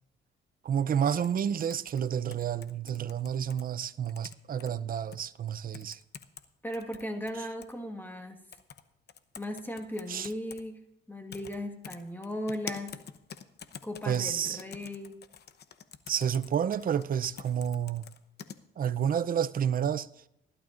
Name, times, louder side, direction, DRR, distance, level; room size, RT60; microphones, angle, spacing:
voice 1, 0.6-6.0 10.1-10.3 14.1-14.6 16.1-18.1 18.8-20.1, right 8 dB, 45° right, 0.6 m, -30 dB
sound 1, 1.1-3.6 4.0-4.7 5.1-5.2 5.7-6.4 6.7-7.7 8.5-8.8 9.1-10.6 11.3-11.6 11.8-18.6, left 8 dB, 55° left, 0.9 m, -46 dB
voice 2, 6.6-8.4 9.3-10.8 11.1-13.0 13.8-15.2, equal, 10° left, 1.5 m, -37 dB
19.0 x 12.0 x 2.6 m
cardioid pair, 90°, 20 cm